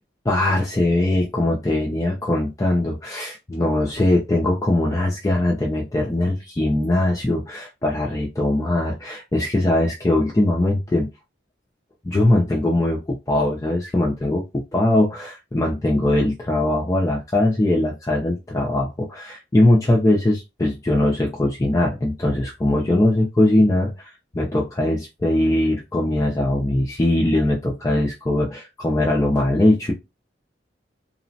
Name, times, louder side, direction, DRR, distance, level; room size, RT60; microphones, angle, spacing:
voice 1, 0.3-11.1 12.0-29.9, left 1 dB, 15° left, -1 dB, 0.4 m, -21 dB
3.1 x 2.0 x 2.6 m, 0.24 s
head